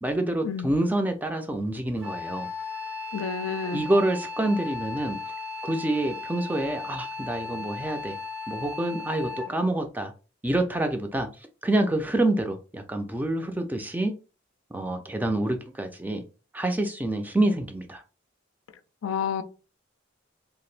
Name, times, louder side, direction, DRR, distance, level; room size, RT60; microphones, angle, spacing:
voice 1, 0.0-2.5 3.7-5.2 5.7-8.2 8.5-10.1 10.4-11.3 11.6-14.1 14.7-16.2 16.5-18.0, right 1 dB, 10° right, 0.3 m, -27 dB
Wind instrument woodwind instrument, 2.0-9.6, left 4 dB, 90° right, 1.1 m, -36 dB
voice 2, 3.1-3.8 19.0-19.4, left 6 dB, 90° left, 0.4 m, -29 dB
2.8 x 2.5 x 3.1 m
head